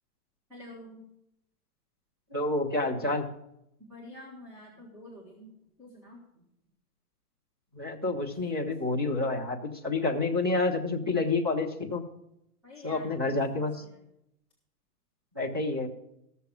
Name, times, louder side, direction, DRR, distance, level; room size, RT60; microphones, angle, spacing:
voice 1, 0.5-1.0 3.9-5.5 5.8-6.2 12.6-13.3, left 1 dB, 5° right, -6 dB, 1.6 m, -47 dB
voice 2, 2.3-3.3 7.7-12.0 12.8-13.8 15.4-15.9, left 3 dB, 20° right, -4 dB, 0.3 m, -29 dB
14.0 x 6.8 x 6.1 m, 0.81 s
hypercardioid pair, 165°, 47 cm